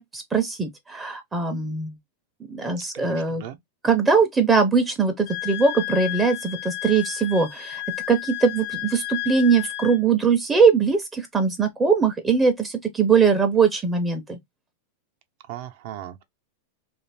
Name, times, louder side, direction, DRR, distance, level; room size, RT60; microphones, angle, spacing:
voice 1, 0.0-1.9 2.5-3.4 3.8-7.8 8.1-14.4, right 5 dB, 15° right, 0.6 m, -21 dB
voice 2, 2.9-3.6 15.5-16.2, right 12 dB, 55° right, 0.6 m, -38 dB
Wind instrument woodwind instrument, 5.3-10.0, left 19 dB, 55° left, 0.5 m, -32 dB
2.5 x 2.4 x 3.3 m
supercardioid pair, 140°, 0 cm